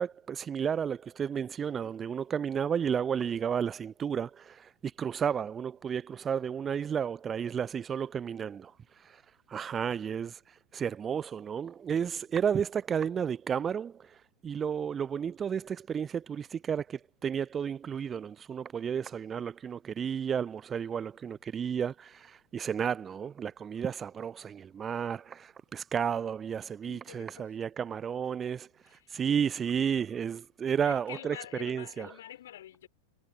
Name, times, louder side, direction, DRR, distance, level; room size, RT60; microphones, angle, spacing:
voice 1, 0.0-9.2 9.5-14.2 14.4-28.7 29.1-32.1, right 7 dB, 20° right, 0.6 m, -32 dB
voice 2, 26.8-27.5 27.8-27.9 28.9-29.1 30.8-32.9, left 12 dB, 60° left, 6.1 m, -46 dB
figure-of-eight pair, 90°, 0 cm